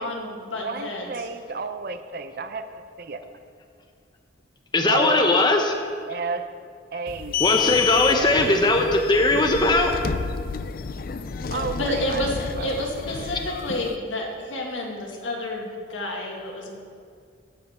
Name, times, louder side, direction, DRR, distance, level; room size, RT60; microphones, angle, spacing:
voice 1, 0.0-1.3 11.1-16.7, left 1 dB, 80° left, 0 dB, 1.8 m, -30 dB
voice 2, 0.6-2.6 3.0-3.2 4.9-5.4 6.1-6.4 6.9-7.4 8.1-8.3 11.5-12.2 12.6-12.7, right 4 dB, 50° right, 9 dB, 0.6 m, -31 dB
voice 3, 4.7-5.7 7.4-9.9, left 2 dB, 20° left, 3 dB, 0.8 m, -19 dB
sound 1, 7.1-14.0, left 7 dB, 45° left, 0.3 m, -30 dB
11.0 x 5.5 x 7.9 m, 2.2 s
head